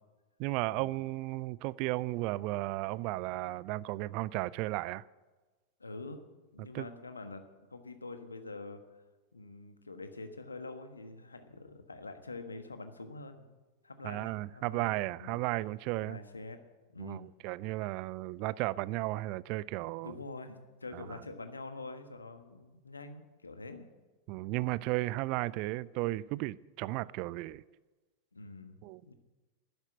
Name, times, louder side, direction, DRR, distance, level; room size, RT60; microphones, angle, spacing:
voice 1, 0.4-5.0 6.7-6.9 14.0-16.2 17.0-20.2 20.9-21.0 24.3-27.6 28.8-29.0, right 19 dB, 45° right, 0.4 m, -34 dB
voice 2, 5.8-6.2 6.5-7.4 7.7-8.8 9.3-13.5 13.8-14.9 15.2-15.4 16.0-16.6 16.9-17.3 20.0-23.9 28.3-29.1, left 3 dB, 80° left, 1.4 m, -45 dB
11.5 x 10.5 x 9.0 m
figure-of-eight pair, 90°, 0 cm